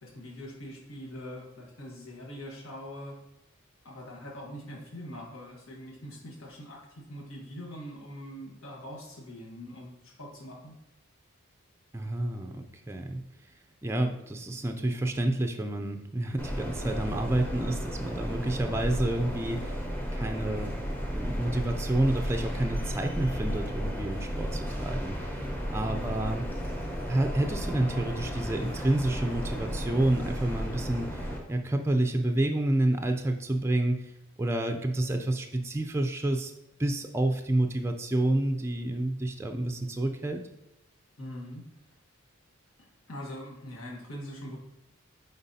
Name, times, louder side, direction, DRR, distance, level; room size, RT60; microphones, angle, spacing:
voice 1, 0.0-3.2 3.8-10.7 25.9-26.4 41.2-41.6 42.8-44.6, equal, 80° left, -3 dB, 1.5 m, -43 dB
voice 2, 11.9-13.2 13.8-19.8 20.1-20.8 21.1-25.4 25.7-26.4 27.1-34.1 34.4-36.5 36.8-40.4, right 1 dB, 10° right, 4 dB, 0.4 m, -29 dB
sound 1, 16.4-31.4, equal, 10° left, 0.9 m, -34 dB
8.9 x 4.0 x 2.8 m, 0.86 s
head